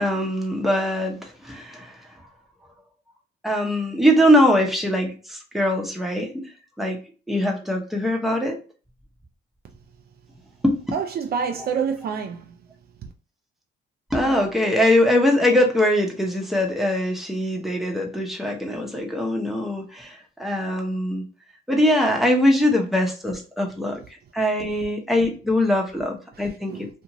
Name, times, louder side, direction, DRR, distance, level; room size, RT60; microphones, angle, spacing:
voice 1, 0.0-2.0 3.4-6.5 6.8-7.0 7.3-8.6 10.6-10.7 14.1-21.2 21.7-24.0 24.3-26.7, left 1 dB, ahead, 0.8 m, -22 dB
voice 2, 10.9-12.6 13.0-13.1 26.4-26.9, right 6 dB, 50° right, 0.4 m, -28 dB
2.6 x 2.5 x 2.9 m
cardioid pair, 90°, 20 cm